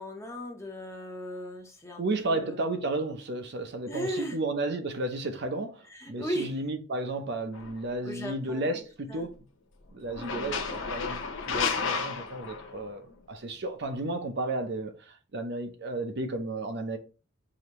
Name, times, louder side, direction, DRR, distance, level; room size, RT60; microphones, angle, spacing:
voice 1, 0.0-2.7 3.9-4.4 5.9-6.5 8.0-8.8 9.1-9.3 10.3-10.7, equal, 15° left, 0.8 m, -37 dB
voice 2, 2.0-9.3 9.9-10.6 10.9-17.0, right 2 dB, 60° right, 0.7 m, -33 dB
sound 1, 7.5-7.8 10.1-12.9, left 5 dB, 75° left, 0.7 m, -32 dB
5.0 x 2.8 x 2.9 m
head